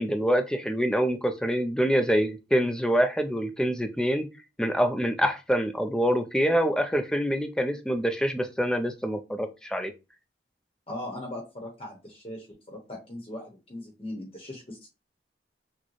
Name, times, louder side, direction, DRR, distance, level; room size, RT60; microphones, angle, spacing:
voice 1, 0.0-4.3 4.6-9.9, equal, 5° left, 6 dB, 0.4 m, -25 dB
voice 2, 10.9-14.9, left 1 dB, 30° left, 1 dB, 0.9 m, -39 dB
6.1 x 2.1 x 3.1 m, 0.28 s
head